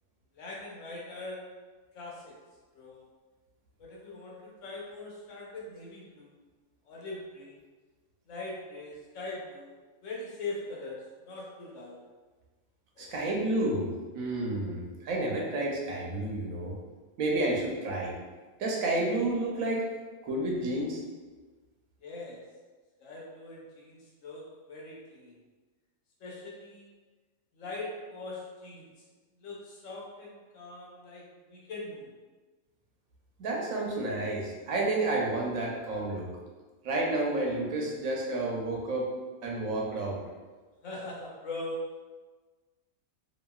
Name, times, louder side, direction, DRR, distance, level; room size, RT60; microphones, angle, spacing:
voice 1, 0.3-1.5 1.9-2.3 2.7-3.1 3.8-6.3 6.9-7.5 8.3-9.7 10.0-12.0 13.0-13.2 22.0-22.4 23.0-25.3 26.2-26.9 27.5-28.8 29.4-31.2 31.5-32.1 40.8-41.8, left 2 dB, 70° left, -4 dB, 1.0 m, -41 dB
voice 2, 13.0-13.9 14.1-16.7 17.2-18.1 18.6-19.8 20.2-21.0 33.4-36.3 36.8-39.1 39.4-40.2, right 2 dB, 85° right, -2 dB, 1.1 m, -30 dB
2.9 x 2.5 x 2.2 m, 1.3 s
omnidirectional pair, 1.4 m